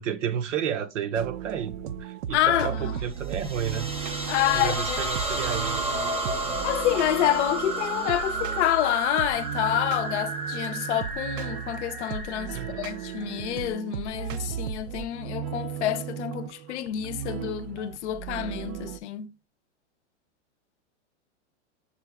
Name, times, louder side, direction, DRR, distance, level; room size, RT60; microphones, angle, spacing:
voice 1, 0.0-3.9 4.5-6.6 12.5-12.9, right 8 dB, 80° right, 0.9 m, -32 dB
sound 1, 1.1-19.0, right 9 dB, 60° right, 0.5 m, -36 dB
voice 2, 2.3-2.9 4.3-5.2 6.6-19.3, left 12 dB, 70° left, 0.6 m, -28 dB
sound 2, 3.2-13.8, right 2 dB, 15° right, 0.7 m, -32 dB
6.3 x 2.2 x 3.4 m
hypercardioid pair, 135°, 36 cm